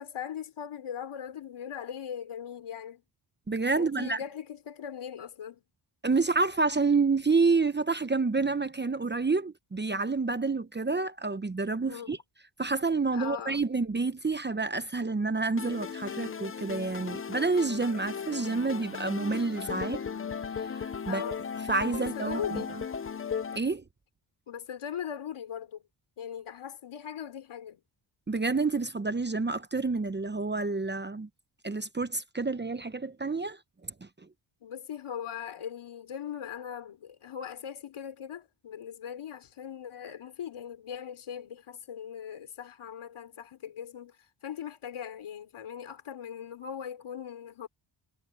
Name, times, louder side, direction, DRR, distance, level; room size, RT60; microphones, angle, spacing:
voice 1, 0.0-3.0 3.7-5.6 11.9-12.1 13.1-13.6 21.1-21.4 22.0-22.7 24.5-25.8 26.2-27.8 34.6-47.7, left 8 dB, 80° left, 4.4 m, -40 dB
voice 2, 3.5-4.2 6.0-12.2 12.6-20.0 20.6-21.3 21.7-22.6 23.5-23.8 28.3-31.3 31.6-33.9, right 4 dB, 20° right, 0.9 m, -28 dB
sound 1, 15.6-23.6, left 6 dB, 25° left, 0.6 m, -36 dB
cardioid pair, 80°, 48 cm